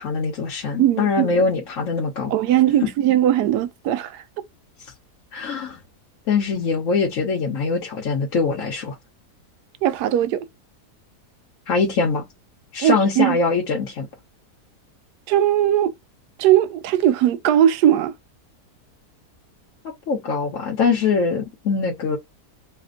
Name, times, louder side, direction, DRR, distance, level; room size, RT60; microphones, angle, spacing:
voice 1, 0.0-2.3 5.3-5.8 6.3-9.0 11.7-12.2 12.7-14.1 20.1-22.2, left 4 dB, 60° left, 1.1 m, -22 dB
voice 2, 0.8-1.4 2.3-4.2 9.8-10.4 12.8-13.4 15.3-15.9 16.4-18.1, right 11 dB, 85° right, 1.1 m, -19 dB
3.4 x 2.1 x 3.7 m
omnidirectional pair, 1.7 m